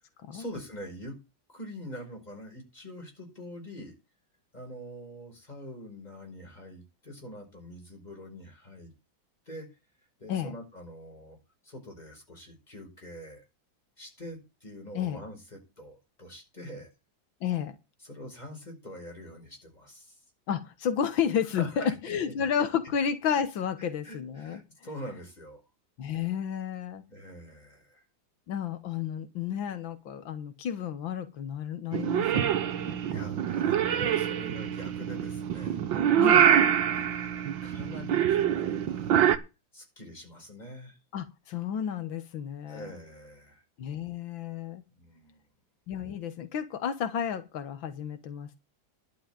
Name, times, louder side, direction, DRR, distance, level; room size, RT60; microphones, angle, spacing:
voice 1, 0.3-1.2 1.5-3.9 4.5-8.9 9.5-9.7 10.0-11.4 11.6-13.5 14.0-16.9 18.0-20.2 21.5-22.3 23.8-25.6 27.1-28.0 33.1-35.8 36.8-39.2 39.7-41.0 42.7-43.6 45.0-45.4, equal, 20° left, 1 dB, 5.5 m, -44 dB
voice 2, 17.4-17.8 20.5-24.6 26.0-27.0 28.5-33.2 36.2-36.5 41.1-42.9 43.8-44.8 45.9-48.6, left 8 dB, 90° left, 10 dB, 2.0 m, -32 dB
Purr / Meow, 31.9-39.4, right 9 dB, 80° right, 1.8 m, -25 dB
11.5 x 5.7 x 8.9 m, 0.28 s
omnidirectional pair, 2.0 m